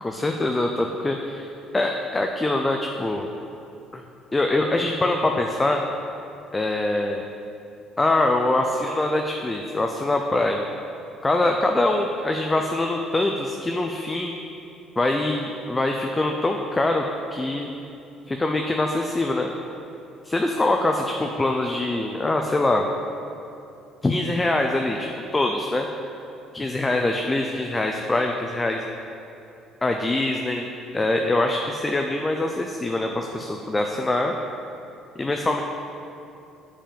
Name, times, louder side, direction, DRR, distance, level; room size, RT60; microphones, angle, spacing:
voice 1, 0.0-1.5 1.7-3.3 3.9-4.0 4.3-5.8 6.5-7.2 8.0-10.6 11.2-14.3 15.0-17.0 17.3-17.7 18.3-19.5 20.2-22.9 24.0-25.9 26.5-28.8 29.8-30.7 30.9-34.3 35.2-35.6, left 2 dB, 15° left, 3 dB, 0.5 m, -24 dB
8.9 x 5.2 x 7.0 m, 2.8 s
cardioid pair, 120°, 0 cm